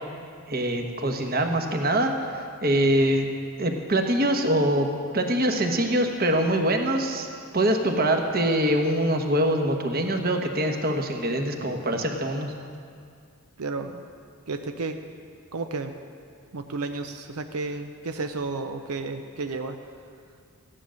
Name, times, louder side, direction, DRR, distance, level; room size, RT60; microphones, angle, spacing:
voice 1, 0.5-2.1 2.6-3.3 3.6-4.9 5.1-7.3 7.5-12.5, right 1 dB, 45° right, 4 dB, 1.1 m, -24 dB
voice 2, 13.6-14.0 14.5-15.0 15.5-15.9 16.5-19.8, right 3 dB, 85° right, 6 dB, 0.6 m, -32 dB
14.5 x 10.0 x 6.3 m, 2.3 s
head